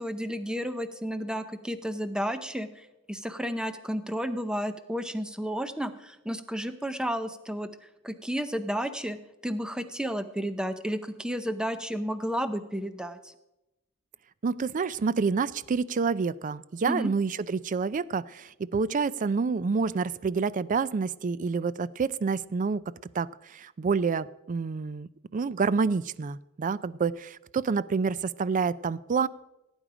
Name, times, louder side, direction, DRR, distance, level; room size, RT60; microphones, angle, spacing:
voice 1, 0.0-2.7 3.1-7.7 8.0-9.2 9.4-13.3 16.9-17.1, equal, 5° right, 11 dB, 0.7 m, -32 dB
voice 2, 14.4-22.8 23.1-29.3, right 5 dB, 35° right, 19 dB, 0.4 m, -28 dB
17.0 x 8.9 x 4.9 m, 0.94 s
head